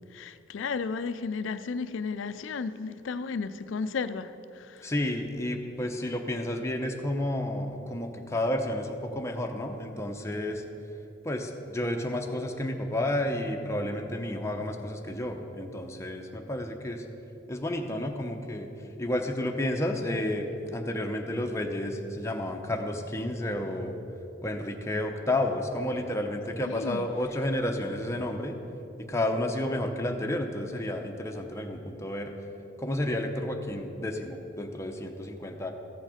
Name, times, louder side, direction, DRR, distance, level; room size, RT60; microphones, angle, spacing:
voice 1, 0.1-4.9 26.6-27.0, left 5 dB, 80° left, 0.4 m, -33 dB
voice 2, 4.8-10.6 11.2-17.0 17.5-18.7 19.0-24.0 24.4-28.6 29.0-32.3 32.8-35.7, left 1 dB, 15° left, 0.7 m, -31 dB
14.5 x 6.4 x 5.0 m
head